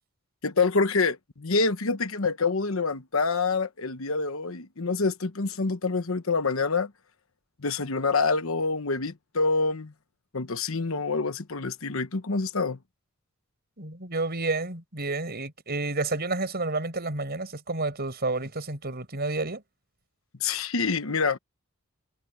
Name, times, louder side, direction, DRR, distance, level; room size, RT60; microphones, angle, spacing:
voice 1, 0.4-6.9 7.6-9.9 10.3-12.8 20.4-21.4, left 4 dB, 70° left, 1.1 m, -26 dB
voice 2, 13.8-19.6, right 3 dB, 50° right, 6.2 m, -30 dB
head